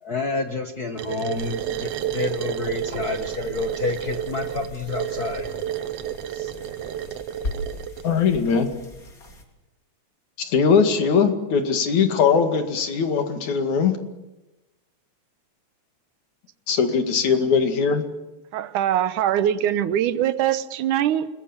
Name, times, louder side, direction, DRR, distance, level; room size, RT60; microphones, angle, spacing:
voice 1, 0.0-5.5 6.3-6.5, left 3 dB, 45° left, 5 dB, 1.2 m, -29 dB
sound 1, 1.0-8.1, right 10 dB, 65° right, 1.9 m, -30 dB
sound 2, 1.3-9.4, left 1 dB, 30° left, 3.4 m, -40 dB
voice 2, 8.0-8.7 10.4-14.0 16.7-18.0, left 6 dB, 70° left, 6 dB, 3.5 m, -20 dB
voice 3, 18.5-21.3, right 11 dB, 80° right, 13 dB, 2.5 m, -22 dB
28.0 x 20.5 x 7.3 m, 1.0 s
omnidirectional pair, 3.5 m